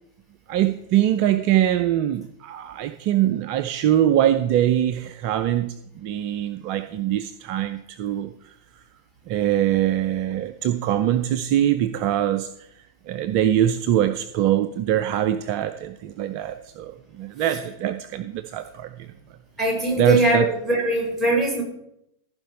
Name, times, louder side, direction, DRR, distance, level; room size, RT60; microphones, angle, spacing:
voice 1, 0.5-8.3 9.3-12.5 13.1-18.9 20.0-20.5, right 11 dB, 45° right, 11 dB, 0.5 m, -23 dB
voice 2, 19.6-21.6, right 1 dB, 10° right, -2 dB, 4.4 m, -21 dB
14.5 x 5.2 x 5.4 m, 0.78 s
figure-of-eight pair, 90°, 0 cm